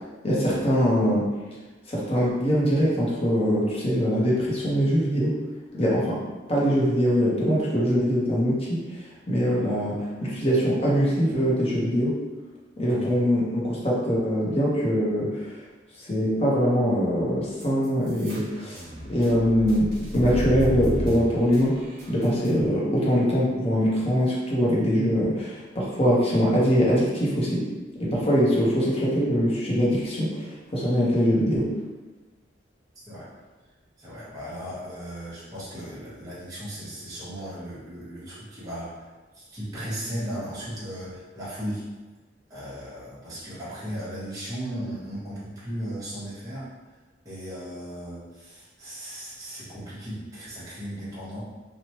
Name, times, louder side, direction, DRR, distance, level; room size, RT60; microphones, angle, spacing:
voice 1, 0.2-1.3 1.9-5.4 5.7-6.2 6.5-8.8 9.3-12.2 12.8-15.5 16.0-18.8 19.1-19.9 20.1-21.8 22.1-27.6 28.0-31.7, equal, 30° left, -5 dB, 0.7 m, -23 dB
sound 1, 17.6-22.5, equal, 55° right, 1.0 m, -33 dB
voice 2, 34.0-39.1 39.3-41.8 42.5-46.7 47.2-51.4, equal, 20° right, -10 dB, 0.8 m, -36 dB
2.9 x 2.1 x 2.8 m, 1.2 s
head